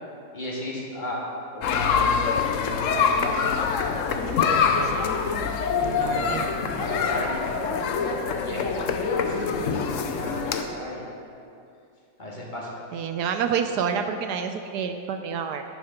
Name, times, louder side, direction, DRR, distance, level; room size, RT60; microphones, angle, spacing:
voice 1, 0.3-1.2 1.5-2.1 2.6-3.7 5.7-6.5 6.8-8.9 9.2-11.2 12.2-12.9, left 1 dB, 25° left, -4 dB, 1.9 m, -35 dB
sound 1, 1.6-10.6, left 6 dB, 65° left, 0.8 m, -25 dB
voice 2, 5.8-6.4 6.7-6.8 12.9-15.6, right 7 dB, 70° right, 7 dB, 1.1 m, -28 dB
10.0 x 7.8 x 5.7 m, 2.5 s
omnidirectional pair, 2.0 m